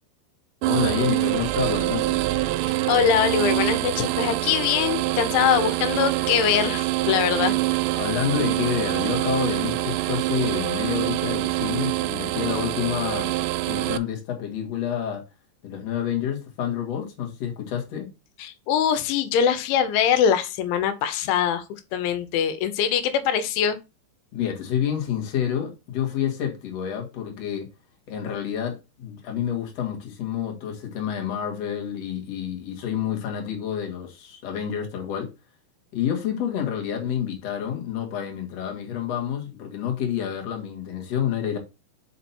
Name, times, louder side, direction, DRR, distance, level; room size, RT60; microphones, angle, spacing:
voice 1, 0.6-2.2 7.9-13.3 13.7-15.2 15.6-18.1 24.3-27.7 28.1-35.3 35.9-41.6, left 9 dB, 50° left, 2.1 m, -28 dB
sound 1, 0.6-14.0, right 16 dB, 85° right, 2.6 m, -25 dB
voice 2, 2.7-7.6 18.4-21.6 21.9-23.8, left 8 dB, 90° left, 3.2 m, -23 dB
5.8 x 5.1 x 4.3 m
omnidirectional pair, 5.2 m